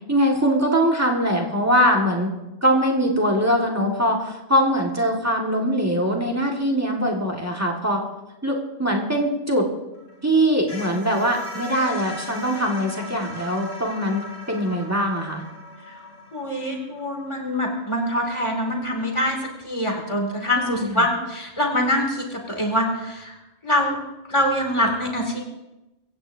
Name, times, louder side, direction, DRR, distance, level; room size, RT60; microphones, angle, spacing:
voice 1, 0.1-2.3 2.6-8.0 8.4-9.7 10.2-15.4 20.7-21.1, equal, 15° right, -1 dB, 1.9 m, -22 dB
sound 1, 9.9-18.8, left 1 dB, 60° left, 3.6 m, -40 dB
voice 2, 16.3-19.4 19.6-23.3 23.6-24.0 24.3-25.4, left 1 dB, 25° left, 1 dB, 2.7 m, -24 dB
24.5 x 15.5 x 2.8 m, 1.0 s
omnidirectional pair, 1.1 m